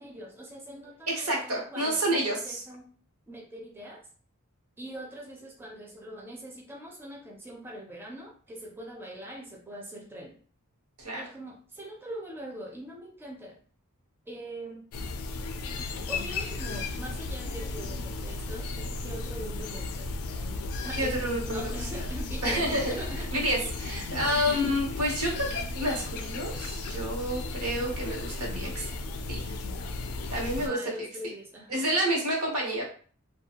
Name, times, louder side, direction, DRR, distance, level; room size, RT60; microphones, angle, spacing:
voice 1, 0.0-2.9 3.3-4.0 4.8-10.4 11.1-13.6 14.3-14.8 16.1-20.1 20.8-23.3 24.1-24.4 30.6-31.9, right 1 dB, 10° right, -1 dB, 0.4 m, -42 dB
voice 2, 1.1-2.6 11.0-11.2 20.9-21.7 22.4-28.9 29.3-29.5 30.3-31.3 31.7-32.8, equal, 85° right, -1 dB, 1.0 m, -29 dB
sound 1, 14.9-30.7, left 3 dB, 80° left, 0.3 m, -35 dB
2.3 x 2.3 x 2.8 m, 0.43 s
head